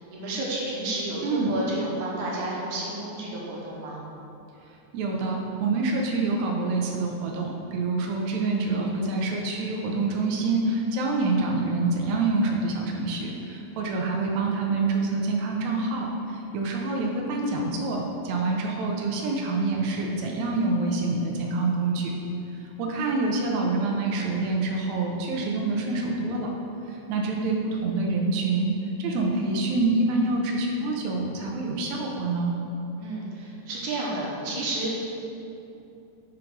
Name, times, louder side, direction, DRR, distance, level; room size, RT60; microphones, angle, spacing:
voice 1, 0.1-4.0 33.0-35.0, right 2 dB, 70° right, -5 dB, 2.3 m, -31 dB
voice 2, 1.2-1.6 4.9-22.1 22.5-26.5 26.9-32.5, right 3 dB, 85° right, 0 dB, 1.6 m, -26 dB
7.4 x 3.8 x 4.5 m, 2.8 s
omnidirectional pair, 4.0 m